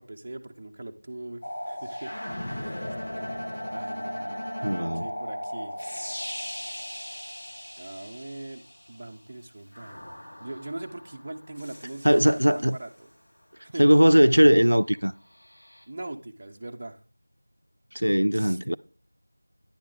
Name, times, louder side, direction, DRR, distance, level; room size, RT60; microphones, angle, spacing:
voice 1, 0.0-2.1 2.4-3.0 3.7-5.7 7.8-8.6 8.9-13.1 13.6-13.9 15.9-17.0 18.3-18.6, right 2 dB, 20° right, 0.5 m, -41 dB
sound 1, 1.4-9.0 9.7-12.7 15.4-15.8, equal, 35° left, 1.4 m, -37 dB
Bowed string instrument, 2.0-6.2, left 1 dB, 15° left, 1.4 m, -41 dB
voice 2, 4.6-5.0 12.0-12.8 13.8-15.1 17.9-18.8, equal, 90° right, 0.3 m, -19 dB
10.0 x 6.4 x 3.8 m
figure-of-eight pair, 175°, 0 cm